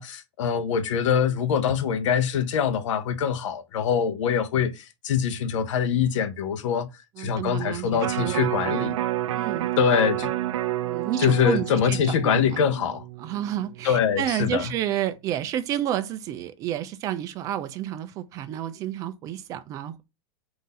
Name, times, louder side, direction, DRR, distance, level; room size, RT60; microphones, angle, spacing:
voice 1, 0.0-6.9 7.2-9.0 9.8-10.3 11.2-13.0 13.8-14.7, left 7 dB, 75° left, 0.7 m, -24 dB
voice 2, 7.2-8.9 9.3-9.7 10.8-12.6 13.2-20.0, right 11 dB, 20° right, 0.3 m, -30 dB
Electric guitar, 8.0-14.2 14.6-14.7, right 14 dB, 85° right, 0.5 m, -30 dB
3.9 x 2.6 x 4.0 m
supercardioid pair, 160°, 16 cm